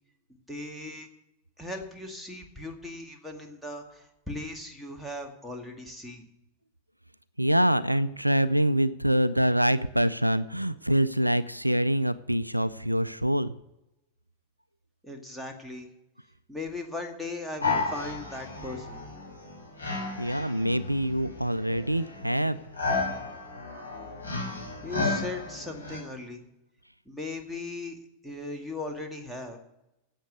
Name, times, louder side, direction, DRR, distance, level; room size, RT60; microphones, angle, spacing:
voice 1, 0.5-1.1 1.6-6.2 15.0-15.9 16.5-19.0 24.8-26.4 27.1-28.0 28.2-29.6, left 2 dB, ahead, 2 dB, 2.2 m, -38 dB
voice 2, 7.4-13.5 20.2-22.6, equal, 90° right, 17 dB, 0.4 m, -25 dB
sound 1, 17.6-26.0, left 3 dB, 85° left, 2.9 m, -33 dB
11.5 x 8.1 x 9.5 m, 0.90 s
figure-of-eight pair, 90°, 0 cm